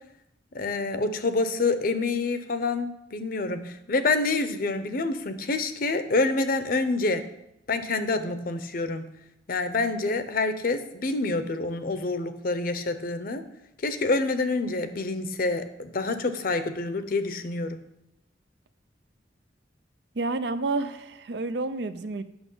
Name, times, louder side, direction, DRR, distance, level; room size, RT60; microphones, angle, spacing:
voice 1, 0.5-7.2 7.7-9.0 9.5-13.4 13.8-17.8, left 3 dB, 55° left, 10 dB, 0.7 m, -27 dB
voice 2, 20.2-22.2, right 3 dB, 75° right, 12 dB, 0.6 m, -29 dB
8.8 x 6.1 x 5.5 m, 0.84 s
head